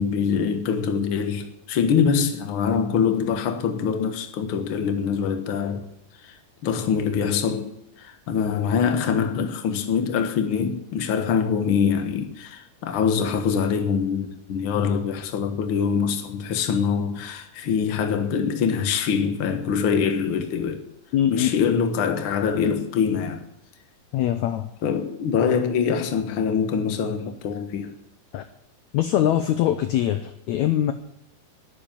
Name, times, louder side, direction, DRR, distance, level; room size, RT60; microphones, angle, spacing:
voice 1, 0.0-5.8 6.2-6.3 6.6-7.7 8.0-20.8 21.3-23.4 24.8-27.9, left 6 dB, 55° left, 1.6 m, -24 dB
voice 2, 21.1-21.7 24.1-24.7 28.3-28.4 28.9-30.9, left 11 dB, 75° left, 1.7 m, -22 dB
10.5 x 9.9 x 9.0 m
omnidirectional pair, 4.0 m